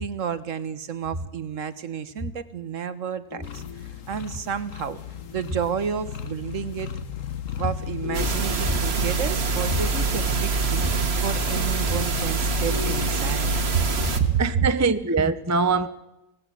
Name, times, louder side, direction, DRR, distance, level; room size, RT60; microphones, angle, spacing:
voice 1, 0.0-5.0 5.3-6.9 7.6-13.9 14.1-14.7, right 8 dB, 55° right, 1.2 m, -30 dB
sound 1, 3.3-6.4 8.0-11.0 12.7-14.9, left 4 dB, 75° left, 3.3 m, -42 dB
sound 2, 3.4-14.4, left 7 dB, 55° left, 1.5 m, -35 dB
sound 3, 8.1-14.2, right 3 dB, 40° right, 1.6 m, -25 dB
voice 2, 14.4-15.9, right 4 dB, 15° right, 0.6 m, -22 dB
24.5 x 18.5 x 7.5 m
omnidirectional pair, 1.7 m